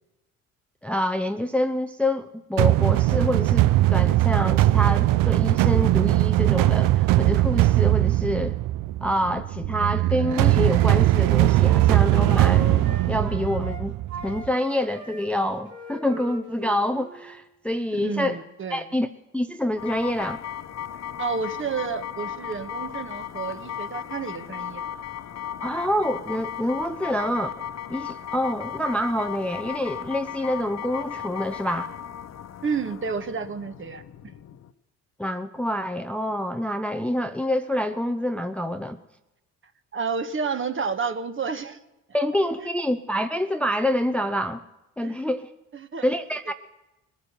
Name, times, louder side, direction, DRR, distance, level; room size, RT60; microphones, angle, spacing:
voice 1, 0.8-8.6 9.0-14.0 14.2-18.4 18.7-19.1 19.3-20.4 25.6-27.6 27.9-31.9 35.2-39.0 42.1-44.6 45.0-45.5 46.0-46.5, left 1 dB, 5° left, 0.6 m, -27 dB
sound 1, 2.6-14.5, right 16 dB, 65° right, 0.5 m, -20 dB
Wind instrument woodwind instrument, 10.8-13.8 14.1-17.4, right 3 dB, 80° right, 2.0 m, -40 dB
voice 2, 18.0-18.9 21.2-24.8 32.6-34.0 39.9-41.8 42.6-42.7 45.0-45.1 45.7-46.1, right 5 dB, 35° right, 1.3 m, -30 dB
sound 2, 19.8-34.7, left 9 dB, 45° left, 0.8 m, -36 dB
20.0 x 9.7 x 6.9 m
hypercardioid pair, 60°, 36 cm